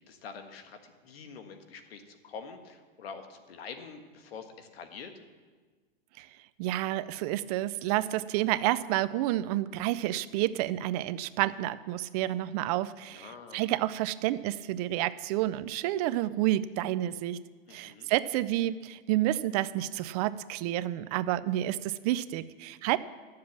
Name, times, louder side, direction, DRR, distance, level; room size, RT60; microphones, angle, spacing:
voice 1, 0.1-5.1 13.1-13.7 17.7-18.1, left 5 dB, 85° left, 7 dB, 1.6 m, -46 dB
voice 2, 6.6-17.4 17.7-23.0, right 14 dB, 40° right, 15 dB, 0.5 m, -30 dB
12.0 x 7.5 x 7.3 m, 1.4 s
hypercardioid pair, 135°, 29 cm